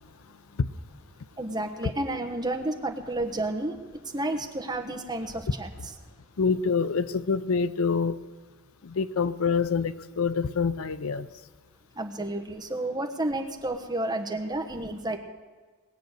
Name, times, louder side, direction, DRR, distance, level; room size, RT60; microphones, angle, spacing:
voice 1, 1.4-3.8 4.1-5.7 12.0-15.2, right 1 dB, 20° right, 5 dB, 1.2 m, -31 dB
voice 2, 6.4-8.2 8.8-11.3, left 5 dB, 75° left, 14 dB, 0.5 m, -26 dB
20.5 x 7.9 x 6.6 m, 1.4 s
head